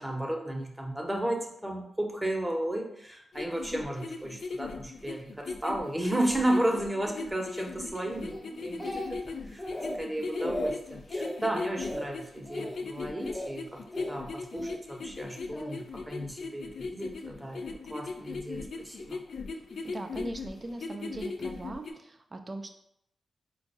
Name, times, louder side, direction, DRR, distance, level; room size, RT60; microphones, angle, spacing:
voice 1, 0.0-9.2 9.4-9.6 10.0-19.2, right 1 dB, 15° right, 1 dB, 0.8 m, -33 dB
sound 1, 3.3-21.9, left 4 dB, 70° left, 0.3 m, -38 dB
Speech, 8.3-9.3 9.6-10.0 10.3-10.7 11.1-11.4 11.8-12.1 12.4-12.8 13.2-13.5 13.9-14.8 15.5-15.8, left 1 dB, 20° left, 0.8 m, -36 dB
voice 2, 19.8-22.7, right 2 dB, 40° right, 5 dB, 0.5 m, -40 dB
4.4 x 2.3 x 2.6 m, 0.76 s
supercardioid pair, 45°, 0 cm